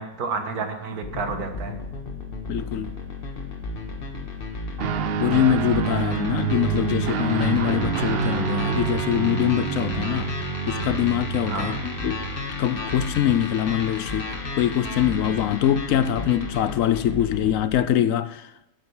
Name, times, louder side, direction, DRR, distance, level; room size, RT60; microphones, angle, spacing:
voice 1, 0.0-1.8 11.5-11.8, right 4 dB, 85° right, 1.8 m, -30 dB
sound 1, 1.0-17.8, left 3 dB, 40° left, 1.4 m, -33 dB
voice 2, 2.5-3.0 5.2-10.3 10.7-12.2 12.6-18.5, left 11 dB, 70° left, 0.9 m, -23 dB
Guitar, 4.8-12.5, right 9 dB, 65° right, 0.6 m, -28 dB
10.5 x 8.8 x 4.7 m
omnidirectional pair, 1.6 m